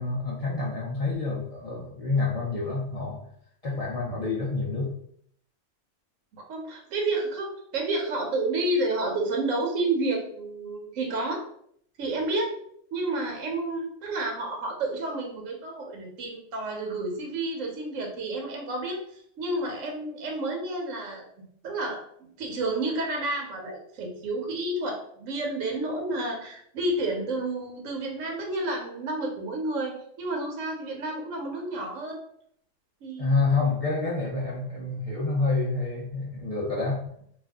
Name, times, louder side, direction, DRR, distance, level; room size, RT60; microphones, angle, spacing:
voice 1, 0.0-3.3 3.6-4.9 33.2-37.0, left 3 dB, 65° left, -4 dB, 0.3 m, -28 dB
voice 2, 6.3-11.4 12.0-12.5 12.9-22.0 22.4-32.2 33.0-33.4, right 2 dB, 85° right, 1 dB, 1.0 m, -30 dB
2.5 x 2.3 x 3.4 m, 0.66 s
omnidirectional pair, 1.3 m